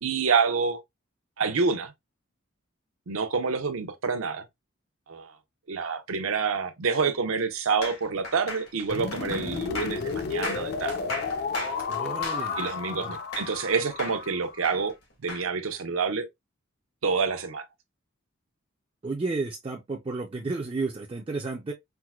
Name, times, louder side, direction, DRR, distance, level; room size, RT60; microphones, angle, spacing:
voice 1, 0.0-0.8 1.4-1.9 3.1-4.5 5.1-5.3 5.7-11.0 11.7-11.8 12.6-14.9 15.2-16.2 17.0-17.6, right 5 dB, 80° right, 0.7 m, -27 dB
sound 1, 7.8-13.7 14.0-15.5, left 2 dB, 90° left, 1.8 m, -36 dB
sound 2, 8.9-14.8, left 5 dB, 50° left, 0.4 m, -32 dB
voice 2, 11.9-12.6 12.9-13.2 19.0-21.7, right 3 dB, 25° right, 0.3 m, -32 dB
4.5 x 2.1 x 2.2 m
head